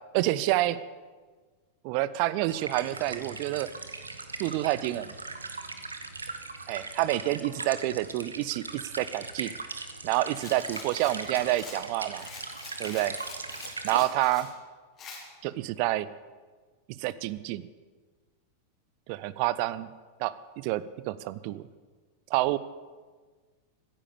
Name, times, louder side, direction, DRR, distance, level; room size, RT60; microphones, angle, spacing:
voice 1, 0.1-0.8 1.8-3.7 4.4-5.1 6.7-9.6 10.0-12.3 12.8-13.2 13.8-14.5 15.4-16.1 16.9-17.7 19.1-19.9 20.2-21.6 22.3-22.6, right 16 dB, 45° right, 17 dB, 0.6 m, -28 dB
sound 1, 2.5-14.0, right 3 dB, 75° right, 1.0 m, -39 dB
Rattle, 10.4-14.5 15.0-15.2, left 4 dB, 30° left, 3.9 m, -46 dB
16.0 x 10.0 x 6.9 m, 1.4 s
figure-of-eight pair, 90°, 0 cm